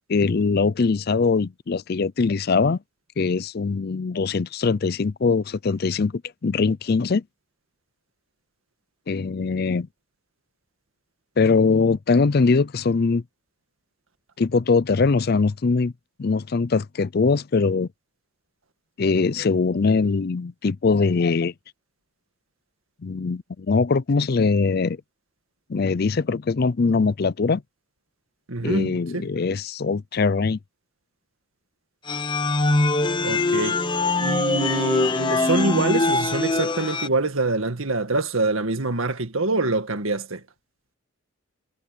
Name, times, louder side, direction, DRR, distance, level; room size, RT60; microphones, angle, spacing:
voice 1, 0.1-2.8 3.2-7.2 9.1-9.9 11.4-13.2 14.4-15.9 16.2-17.9 19.0-21.5 23.0-25.0 25.7-27.6 28.6-30.6, left 4 dB, 50° left, 0.5 m, -22 dB
voice 2, 28.5-29.3 33.2-33.8 34.2-40.4, right 3 dB, 85° right, 2.0 m, -25 dB
sound 1, 32.1-37.1, left 2 dB, 25° left, 0.8 m, -22 dB
head